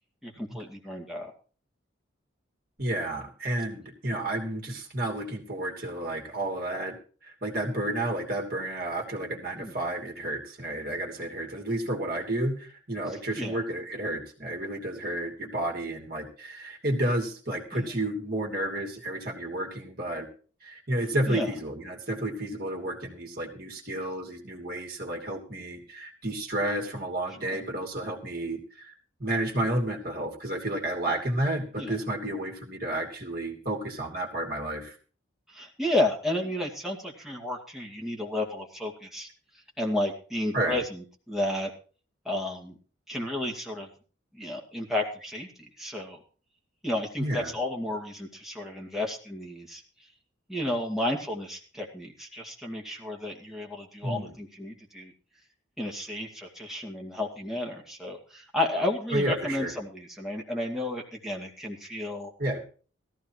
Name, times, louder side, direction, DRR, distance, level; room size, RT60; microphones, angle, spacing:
voice 1, 0.2-1.3 9.6-9.7 13.4-13.6 17.7-17.8 21.3-21.5 27.4-27.6 31.8-31.9 35.5-39.3 39.8-41.7 42.3-42.7 43.1-43.9 44.3-46.2 46.8-49.8 50.5-55.1 55.8-62.3, left 1 dB, ahead, -1 dB, 2.2 m, -32 dB
voice 2, 2.8-7.0 7.2-20.3 20.6-28.9 29.2-34.9 40.5-40.8 47.2-47.5 54.0-54.4 59.1-59.7 62.4-62.6, right 1 dB, 50° right, 1 dB, 3.0 m, -31 dB
17.5 x 14.5 x 3.1 m, 0.39 s
head